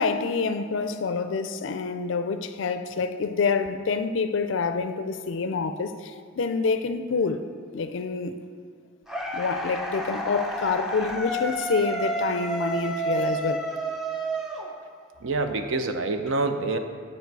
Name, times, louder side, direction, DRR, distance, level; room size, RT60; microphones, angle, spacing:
voice 1, 0.0-7.5 7.7-8.4 9.3-13.6, left 4 dB, 60° left, 0.4 m, -27 dB
sound 1, 9.1-15.2, right 1 dB, ahead, 0.5 m, -30 dB
voice 2, 15.2-16.8, right 3 dB, 65° right, 0.5 m, -26 dB
10.5 x 4.4 x 4.6 m
head